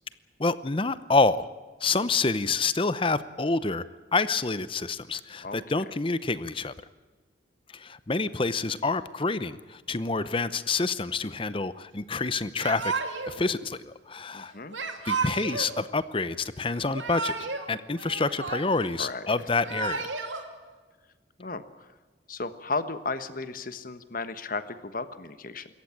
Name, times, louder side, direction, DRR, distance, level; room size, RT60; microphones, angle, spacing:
voice 1, 0.4-1.5 1.8-3.8 4.1-6.7 7.7-12.9 13.3-14.5 15.1-17.4 17.7-20.1, left 3 dB, 30° left, 15 dB, 0.8 m, -27 dB
Yell / Crying sobbing, 12.6-13.4 14.7-15.7 16.8-17.7 18.0-18.9 19.5-20.4, right 4 dB, 85° right, 2.7 m, -32 dB
voice 2, 14.3-14.8 19.0-19.3 21.4-21.9 22.3-25.7, left 3 dB, 50° left, 11 dB, 1.3 m, -34 dB
26.0 x 14.5 x 8.9 m, 1.3 s
head